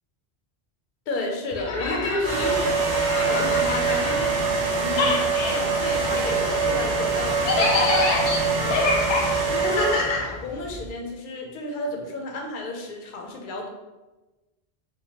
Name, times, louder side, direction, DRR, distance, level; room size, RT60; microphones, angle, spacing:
voice 1, 1.1-4.3 4.7-7.8 8.6-9.0 9.5-13.7, left 2 dB, 55° left, 1 dB, 0.6 m, -32 dB
sound 1, 1.5-4.6 4.9-10.9, left 3 dB, 85° left, 0.9 m, -27 dB
sound 2, 2.2-10.3, right 4 dB, 75° right, 0.8 m, -24 dB
3.0 x 2.2 x 2.8 m, 1.1 s
omnidirectional pair, 1.1 m